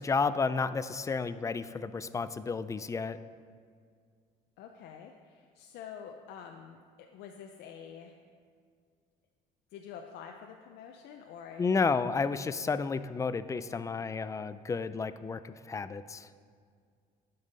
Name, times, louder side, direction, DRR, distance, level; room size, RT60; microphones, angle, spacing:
voice 1, 0.0-3.2 11.6-16.3, left 4 dB, 20° left, 13 dB, 0.3 m, -31 dB
voice 2, 4.6-8.1 9.7-11.8, left 7 dB, 80° left, 3 dB, 0.5 m, -47 dB
11.5 x 5.5 x 4.0 m, 2.1 s
cardioid pair, 95°, 17 cm